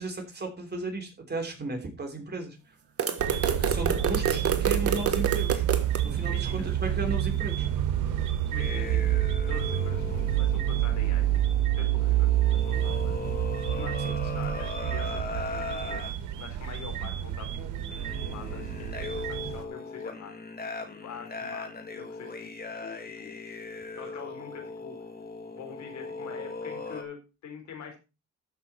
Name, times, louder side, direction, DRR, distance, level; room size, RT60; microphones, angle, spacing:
voice 1, 0.0-2.6 3.4-5.7 6.0-7.7 14.0-14.1, right 2 dB, 35° right, 3 dB, 3.4 m, -35 dB
sound 1, 3.0-6.0, right 7 dB, 50° right, 1.6 m, -27 dB
voice 2, 3.1-3.7 6.2-6.7 8.5-9.2 9.5-13.2 13.7-16.0 16.4-17.5 18.0-20.4 21.0-22.5 22.8-23.3 24.0-25.0 25.5-28.0, left 6 dB, 65° left, 3 dB, 4.2 m, -45 dB
sound 2, 3.2-19.7, right 12 dB, 90° right, 1.4 m, -28 dB
sound 3, 8.6-16.1 17.0-17.2 17.9-27.0, left 3 dB, 30° left, 2.5 m, -39 dB
13.5 x 6.0 x 4.4 m, 0.29 s
cardioid pair, 90°, 30 cm